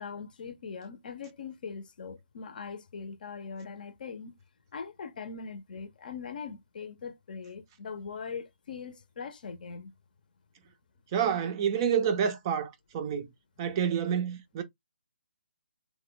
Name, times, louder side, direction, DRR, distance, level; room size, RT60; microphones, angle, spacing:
voice 1, 0.0-4.3 4.7-9.9, left 5 dB, 50° left, 0.6 m, -41 dB
voice 2, 11.1-13.3 13.6-14.6, right 8 dB, 25° right, 0.4 m, -28 dB
3.2 x 2.2 x 3.7 m
hypercardioid pair, 160°, 6 cm